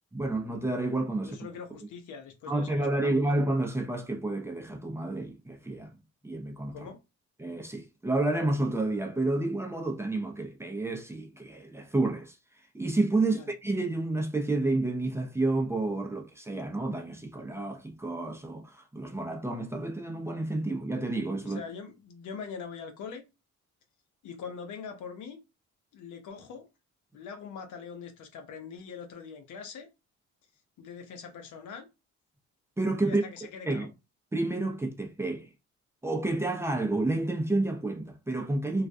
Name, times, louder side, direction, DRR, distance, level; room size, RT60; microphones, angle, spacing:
voice 1, 0.1-1.4 2.5-5.9 6.2-6.8 7.4-12.4 12.7-21.6 32.8-33.2 33.7-33.9 34.3-35.5 36.0-38.9, right 2 dB, 10° right, 0.5 m, -30 dB
voice 2, 1.3-3.4 6.7-7.0 13.2-13.5 21.4-23.2 24.2-25.4 25.9-26.7 27.1-29.9 30.8-31.9 33.0-33.9, left 6 dB, 80° left, 0.7 m, -42 dB
2.4 x 2.1 x 2.6 m
cardioid pair, 90°, 30 cm